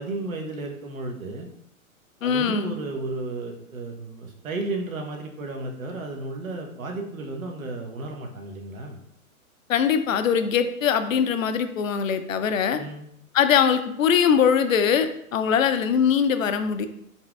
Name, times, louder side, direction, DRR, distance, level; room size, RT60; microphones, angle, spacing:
voice 1, 0.0-1.5 2.2-9.0 12.8-13.1, right 2 dB, 75° right, 3 dB, 0.9 m, -33 dB
voice 2, 2.2-2.8 9.7-12.8 13.3-16.9, left 7 dB, 70° left, 10 dB, 0.5 m, -22 dB
4.1 x 3.7 x 2.3 m, 0.73 s
figure-of-eight pair, 120°, 42 cm